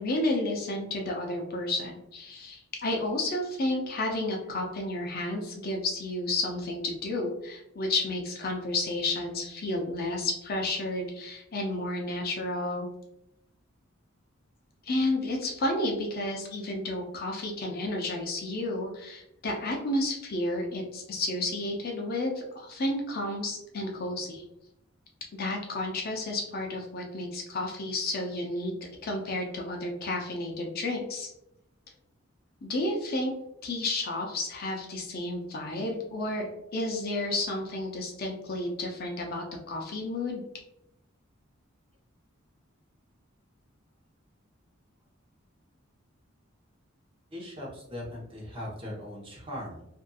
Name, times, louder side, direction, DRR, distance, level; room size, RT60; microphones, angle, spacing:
voice 1, 0.0-12.9 14.8-24.4 25.3-28.7 29.0-31.3 32.6-33.3 33.6-40.4, left 2 dB, 45° left, 1 dB, 0.5 m, -31 dB
voice 2, 47.3-49.8, left 1 dB, 25° right, -4 dB, 0.8 m, -39 dB
2.7 x 2.5 x 2.3 m, 0.81 s
head